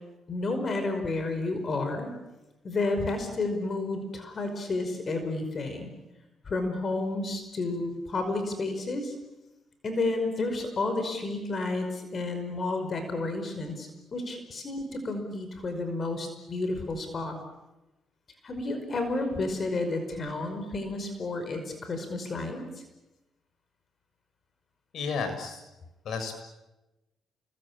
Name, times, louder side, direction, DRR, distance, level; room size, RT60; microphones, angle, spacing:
voice 1, 0.3-2.1 2.6-5.9 6.4-9.1 9.8-17.4 18.4-22.6, left 2 dB, 40° left, 7 dB, 5.2 m, -31 dB
voice 2, 24.9-25.6 26.0-26.4, left 5 dB, 70° left, 7 dB, 6.8 m, -32 dB
29.5 x 21.5 x 8.8 m, 1.0 s
cardioid pair, 90°, 0 cm